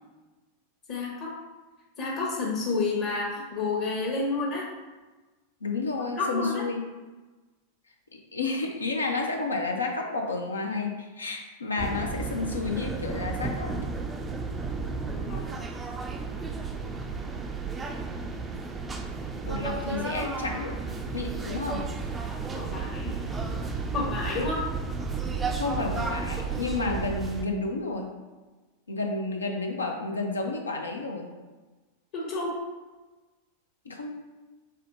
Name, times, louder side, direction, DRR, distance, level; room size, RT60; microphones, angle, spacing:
voice 1, 0.9-1.3 2.0-4.7 6.2-6.7 15.0-15.5 22.5-23.1 23.9-24.7 32.1-32.6, left 3 dB, 45° left, -5 dB, 1.0 m, -30 dB
voice 2, 5.6-6.8 8.1-13.8 19.4-20.8 21.1-21.9 25.5-28.1 28.9-31.3 33.8-34.1, left 3 dB, 75° left, 2 dB, 0.6 m, -31 dB
sound 1, 11.8-27.4, right 4 dB, 15° right, 0.4 m, -33 dB
5.6 x 3.6 x 2.6 m, 1.2 s
figure-of-eight pair, 90°, 0 cm